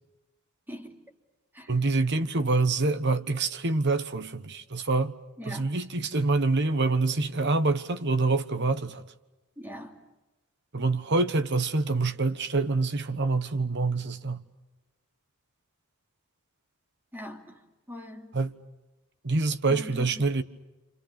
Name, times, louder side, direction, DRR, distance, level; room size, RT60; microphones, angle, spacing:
voice 1, 1.7-5.1 5.4-9.0 10.7-14.4 18.3-18.5 19.2-20.4, right 3 dB, 50° right, 1.2 m, -26 dB
voice 2, 5.4-5.7 9.6-10.0 17.1-17.6 17.9-18.4 19.7-20.2, left 1 dB, 10° right, 3.0 m, -41 dB
29.5 x 26.5 x 6.0 m
head